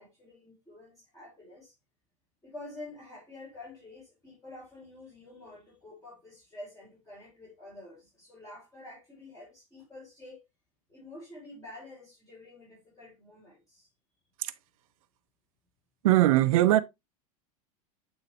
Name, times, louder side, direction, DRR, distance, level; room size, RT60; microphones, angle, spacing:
voice 1, 0.0-1.7 2.4-10.4 10.9-13.9, left 2 dB, 15° left, 4.4 m, -48 dB
voice 2, 16.0-16.8, right 15 dB, 70° right, 0.7 m, -21 dB
8.8 x 4.0 x 3.0 m
hypercardioid pair, 95°, 18 cm